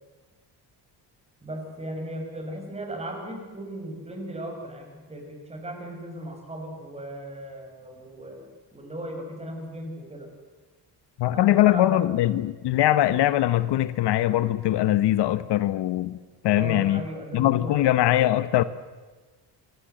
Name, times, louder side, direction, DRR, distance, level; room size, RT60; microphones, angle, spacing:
voice 1, 1.4-10.3 11.3-12.1 16.5-17.8, right 1 dB, 15° right, 5.9 m, -37 dB
voice 2, 11.2-16.2 16.4-17.0 17.3-18.6, left 14 dB, 70° left, 1.1 m, -22 dB
28.0 x 23.5 x 7.9 m
cardioid pair, 170°, 43 cm